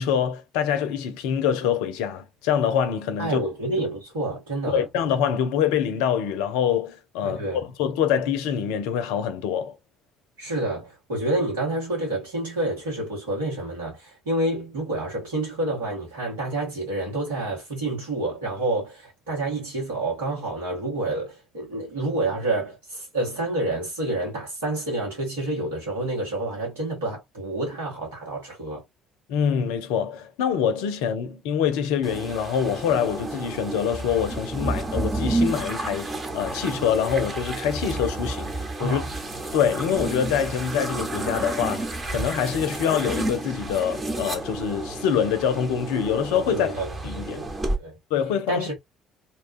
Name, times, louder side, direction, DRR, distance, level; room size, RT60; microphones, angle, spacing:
voice 1, 0.0-3.4 4.7-9.8 29.3-36.1 36.3-38.5 38.8-39.0 39.5-46.7 47.0-47.4 48.1-48.8, left 8 dB, 70° left, 0.5 m, -25 dB
voice 2, 3.2-4.8 7.2-7.6 10.4-28.8 38.8-39.1 46.5-47.0 47.3-47.5 47.8-48.0 48.5-48.7, right 2 dB, 80° right, 1.6 m, -28 dB
sound 1, 32.0-47.8, right 2 dB, 25° right, 1.0 m, -31 dB
2.9 x 2.3 x 2.5 m
hypercardioid pair, 55°, 0 cm